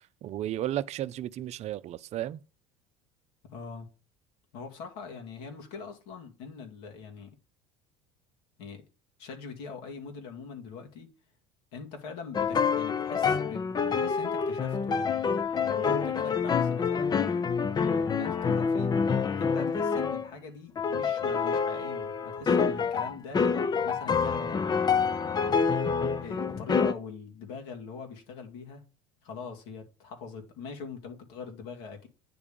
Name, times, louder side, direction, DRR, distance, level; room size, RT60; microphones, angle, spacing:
voice 1, 0.2-2.4, right 12 dB, 50° right, 0.6 m, -33 dB
voice 2, 3.5-3.9 4.5-7.3 8.6-8.8 9.2-11.1 11.7-17.1 17.8-18.9 19.4-23.5 23.8-25.6 26.2-28.8 29.2-32.1, left 5 dB, 75° left, 2.3 m, -42 dB
sound 1, 12.3-20.3 20.8-26.9, left 5 dB, 30° left, 0.7 m, -27 dB
9.3 x 3.6 x 6.9 m
supercardioid pair, 90°, 14 cm